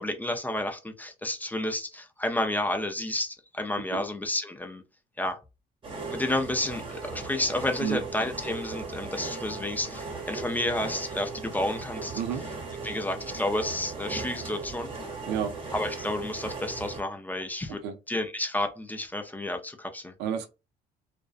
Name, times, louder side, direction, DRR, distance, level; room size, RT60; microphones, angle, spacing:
voice 1, 0.0-4.8 5.2-5.4 6.1-12.2 12.8-14.9 15.7-17.8 18.1-20.1, left 1 dB, 10° left, 0.4 m, -31 dB
voice 2, 3.9-4.0 7.8-8.0 12.1-12.4 15.3-15.5 17.8-17.9 20.2-20.5, right 8 dB, 85° right, 0.6 m, -30 dB
sound 1, 5.8-17.0, right 4 dB, 30° right, 0.9 m, -37 dB
2.4 x 2.1 x 2.4 m
cardioid pair, 110°, 17 cm